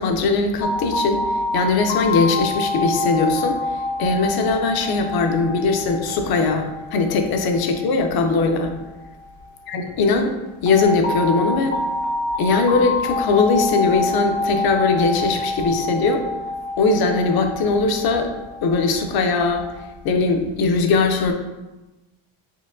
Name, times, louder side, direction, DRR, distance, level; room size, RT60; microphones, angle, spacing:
voice 1, 0.0-8.7 9.7-10.3 10.6-11.8 12.4-16.2 16.8-18.3 18.6-19.7 20.0-21.3, left 4 dB, 50° left, 5 dB, 0.5 m, -20 dB
sound 1, 0.6-9.4 10.7-19.8, left 2 dB, 70° left, 0.9 m, -27 dB
4.5 x 2.9 x 2.5 m, 1.1 s
cardioid pair, 150°, 49 cm